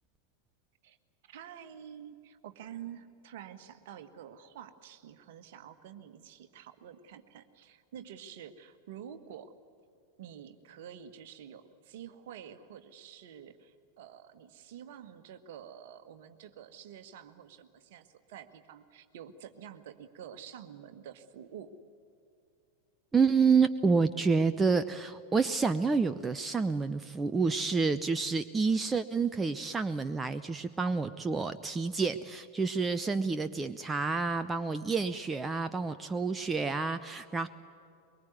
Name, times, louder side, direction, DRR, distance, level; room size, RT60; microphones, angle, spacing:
voice 1, 1.3-9.5 10.2-21.7, right 9 dB, 50° right, 9 dB, 1.6 m, -48 dB
voice 2, 23.1-37.5, right 4 dB, 15° right, 10 dB, 0.7 m, -28 dB
23.5 x 23.0 x 9.5 m, 2.5 s
figure-of-eight pair, 90°, 0 cm